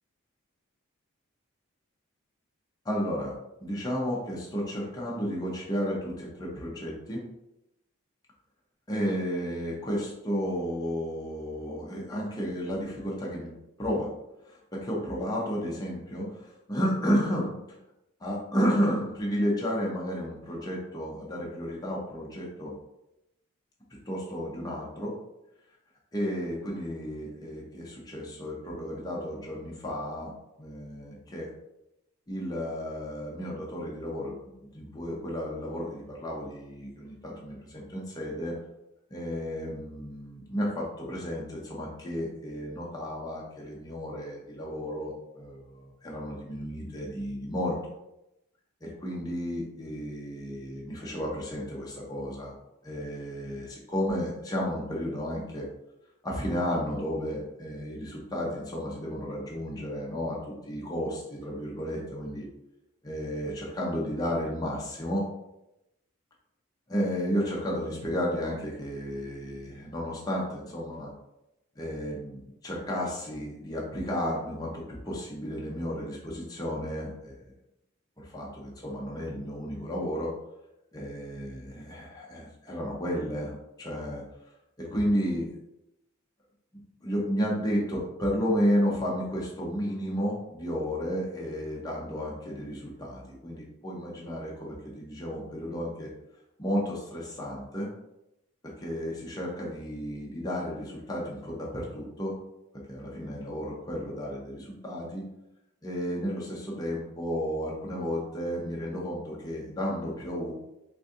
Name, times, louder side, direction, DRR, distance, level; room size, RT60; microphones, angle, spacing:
voice 1, 2.8-7.2 8.9-13.5 13.8-14.1 14.4-17.6 18.2-22.7 24.1-25.2 26.1-31.5 32.3-38.5 39.1-47.8 48.8-52.5 52.8-55.7 56.2-62.5 63.0-65.3 66.9-71.1 71.8-77.5 78.2-80.3 80.9-84.2 84.8-85.6 87.0-96.1 96.6-97.9 98.8-102.4 102.9-105.3 105.8-110.5, equal, 20° left, -4 dB, 0.6 m, -32 dB
3.8 x 2.5 x 2.5 m, 0.89 s
head